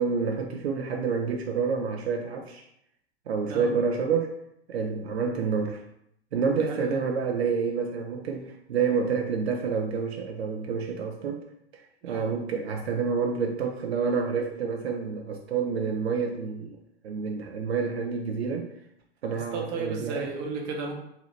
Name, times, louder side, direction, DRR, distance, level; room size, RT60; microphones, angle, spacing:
voice 1, 0.0-2.6 3.3-4.4 4.7-5.8 6.3-11.4 11.7-16.8 17.0-18.7 19.2-20.3, right 5 dB, 75° right, 3 dB, 0.6 m, -28 dB
voice 2, 6.6-7.0 12.0-12.3 19.3-20.9, right 4 dB, 40° right, 1 dB, 0.9 m, -34 dB
3.8 x 2.8 x 3.2 m, 0.76 s
hypercardioid pair, 105°, 32 cm